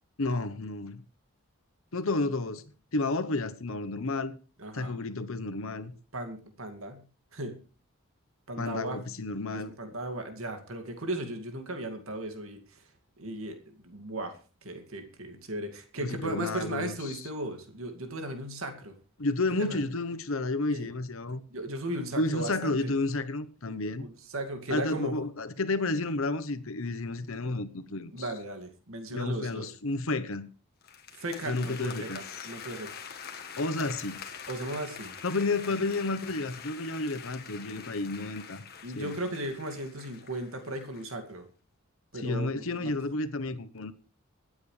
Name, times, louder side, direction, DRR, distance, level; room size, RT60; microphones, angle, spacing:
voice 1, 0.2-1.0 1.9-2.6 2.9-4.3 4.7-5.9 8.6-9.7 16.0-17.2 19.2-21.4 22.2-24.1 24.7-28.3 29.1-30.5 31.5-32.5 33.6-34.2 35.2-38.6 38.9-39.1 42.1-43.9, left 2 dB, 65° left, 1.0 m, -31 dB
voice 2, 4.6-4.9 6.1-7.0 7.3-7.6 8.5-9.0 9.5-12.8 13.2-18.9 19.6-19.8 20.7-20.9 21.5-22.9 24.0-25.1 28.1-29.7 31.2-33.0 34.5-35.1 37.8-37.9 38.8-41.4 42.1-42.9, right 1 dB, 70° right, 2.3 m, -36 dB
sound 1, 30.8-41.1, left 6 dB, 45° left, 1.6 m, -45 dB
24.5 x 9.5 x 3.3 m
head